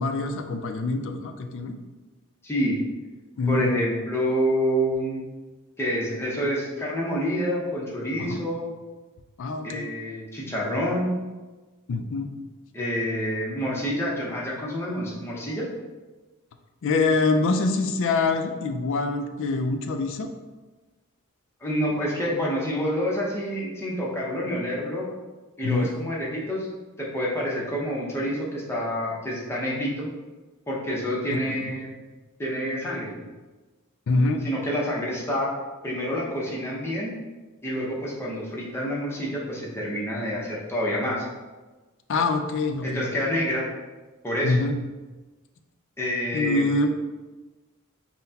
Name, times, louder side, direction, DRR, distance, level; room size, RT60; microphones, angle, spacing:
voice 1, 0.0-1.8 3.4-3.7 8.2-8.4 9.4-9.9 11.9-12.3 16.8-20.3 25.6-25.9 31.3-31.7 34.1-34.4 42.1-43.2 44.4-44.7 46.3-46.9, left 3 dB, 60° left, 6 dB, 0.4 m, -25 dB
voice 2, 2.4-2.8 3.5-5.2 5.8-8.7 9.6-11.1 12.7-15.7 21.6-25.1 25.6-26.7 27.0-30.1 30.7-32.0 32.4-33.1 34.4-35.5 35.8-37.2 37.6-41.2 42.8-43.7 44.2-44.5 46.0-46.7, equal, 10° left, -4 dB, 0.8 m, -28 dB
5.6 x 2.2 x 2.8 m, 1.2 s
head